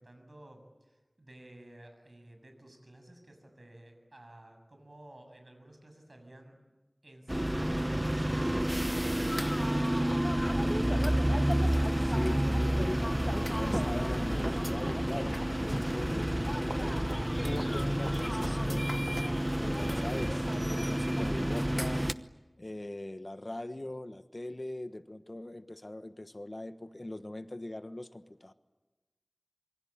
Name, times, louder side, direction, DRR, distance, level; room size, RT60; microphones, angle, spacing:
voice 1, 0.0-6.6 7.0-11.1, right 1 dB, 70° right, 5 dB, 7.4 m, -54 dB
sound 1, 7.3-22.1, right 1 dB, 20° right, 0.9 m, -30 dB
sound 2, 9.0-22.1, left 1 dB, 20° left, 2.1 m, -41 dB
voice 2, 12.0-17.0 17.4-19.0 19.6-20.5 20.7-22.1 22.6-28.5, left 1 dB, 50° left, 10 dB, 1.3 m, -41 dB
27.0 x 24.0 x 9.0 m, 1.2 s
wide cardioid pair, 45°, 0 cm